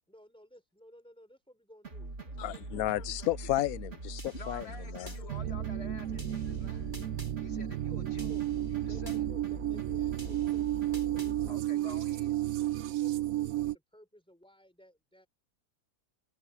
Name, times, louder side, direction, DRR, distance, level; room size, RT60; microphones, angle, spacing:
voice 1, 0.1-3.0 5.1-5.7 6.1-6.2 7.9-8.4 8.8-12.2 12.7-15.3, equal, 5° left, 4.8 m, -57 dB
sound 1, 1.8-11.5, right 2 dB, 45° right, 2.9 m, -42 dB
voice 2, 2.4-5.1 6.5-6.6, left 14 dB, 70° left, 1.0 m, -33 dB
sound 2, 4.2-5.2 6.2-7.3 8.2-9.2 10.2-11.3, equal, 10° right, 8.2 m, -51 dB
voice 3, 4.3-6.9 7.4-8.4 8.7-9.2 11.5-12.3, left 3 dB, 40° left, 2.3 m, -49 dB
sound 3, 5.3-13.8, right 14 dB, 65° right, 0.9 m, -33 dB
omnidirectional pair, 1.7 m